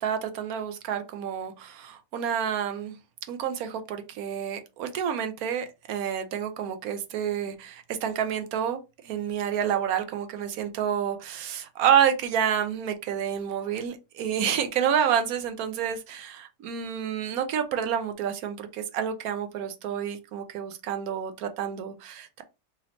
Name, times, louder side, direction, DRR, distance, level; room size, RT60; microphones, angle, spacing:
voice 1, 0.0-3.0 3.3-8.8 9.0-22.4, right 8 dB, 70° right, 1.0 m, -29 dB
4.1 x 3.0 x 2.7 m
omnidirectional pair, 1.8 m